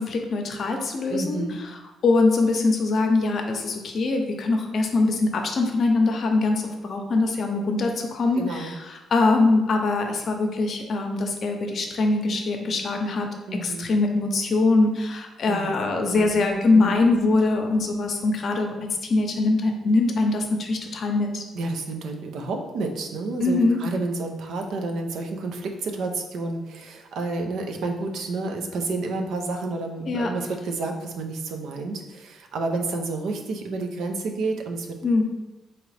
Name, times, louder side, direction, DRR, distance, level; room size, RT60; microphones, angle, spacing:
voice 1, 0.0-1.4 2.0-13.3 13.6-18.7 19.0-21.4 23.4-23.8 30.1-30.3 35.0-35.2, left 3 dB, 55° left, 3 dB, 0.6 m, -22 dB
voice 2, 1.1-1.6 8.4-8.8 13.5-13.9 15.5-15.7 16.0-17.0 21.5-34.9, right 3 dB, 75° right, 3 dB, 0.5 m, -30 dB
3.8 x 2.9 x 3.2 m, 1.1 s
cardioid pair, 90°, 0 cm